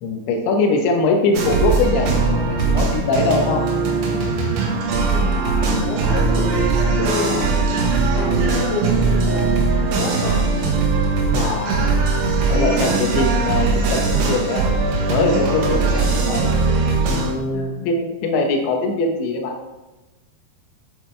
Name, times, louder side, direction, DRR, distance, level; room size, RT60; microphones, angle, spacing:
voice 1, 0.0-3.6 11.2-11.9 12.2-14.6 15.1-16.5 17.1-19.5, left 3 dB, 85° left, 2 dB, 3.4 m, -22 dB
sound 1, 1.3-17.3, right 4 dB, 75° right, 3.4 m, -20 dB
Wind instrument woodwind instrument, 3.3-10.8, right 3 dB, 90° right, 1.6 m, -32 dB
voice 2, 4.9-10.7 11.5-11.6 12.5-12.6 17.5-18.0, left 4 dB, 65° left, 0 dB, 2.3 m, -30 dB
Bass guitar, 8.1-17.8, right 1 dB, 10° right, 1.9 m, -35 dB
8.7 x 8.7 x 3.3 m, 1.1 s
omnidirectional pair, 5.1 m